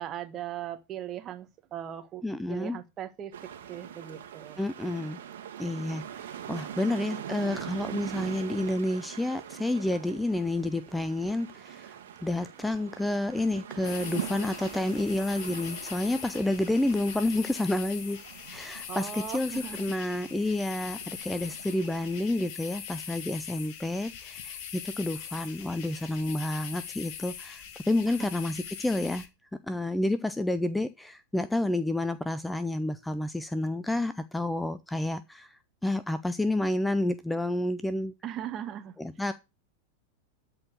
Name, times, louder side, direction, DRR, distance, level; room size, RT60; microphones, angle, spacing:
voice 1, 0.0-2.2 2.5-3.3 3.7-4.6 18.9-20.0 28.1-28.4 38.2-39.0, right 11 dB, 30° right, 1.4 m, -39 dB
voice 2, 2.2-2.8 4.6-5.2 5.6-12.0 12.2-18.2 18.5-29.3 29.7-38.1 39.0-39.3, left 1 dB, 5° left, 0.6 m, -30 dB
sound 1, 3.3-22.2, right 10 dB, 60° right, 1.9 m, -43 dB
sound 2, 13.8-29.3, left 8 dB, 45° left, 1.6 m, -42 dB
13.0 x 4.4 x 8.0 m
figure-of-eight pair, 90°, 0 cm